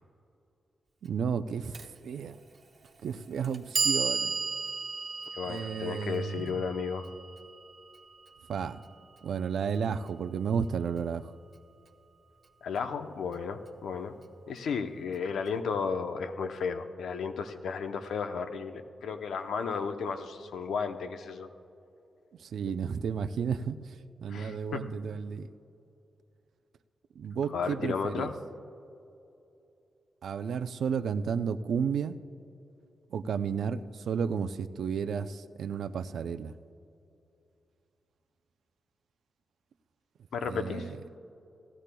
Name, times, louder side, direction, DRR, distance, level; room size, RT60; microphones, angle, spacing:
voice 1, 1.0-2.4 3.0-4.4 5.5-6.6 8.5-8.8 9.2-11.3 22.4-24.0 24.2-25.5 27.2-28.3 30.2-32.2 33.1-36.5 40.4-40.9, right 6 dB, 80° right, 11 dB, 0.4 m, -32 dB
Clock, 1.7-1.9 2.8-2.9 3.4-9.5, right 4 dB, 40° right, 0.8 m, -35 dB
voice 2, 5.3-7.1 12.6-14.2 14.5-21.5 24.3-24.8 27.5-28.3 40.3-40.9, left 5 dB, 90° left, 7 dB, 0.7 m, -33 dB
18.0 x 15.0 x 2.2 m, 2.7 s
wide cardioid pair, 140°, 0 cm